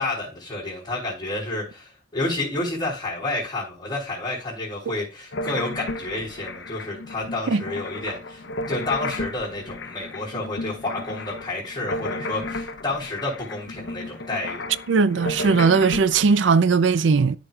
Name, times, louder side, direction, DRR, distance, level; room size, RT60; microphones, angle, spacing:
voice 1, 0.0-14.7, left 2 dB, 25° left, 3.3 m, -30 dB
sound 1, 5.3-16.5, left 2 dB, 75° left, 0.8 m, -33 dB
voice 2, 14.9-17.4, right 5 dB, 80° right, 0.5 m, -18 dB
13.0 x 5.1 x 2.3 m
head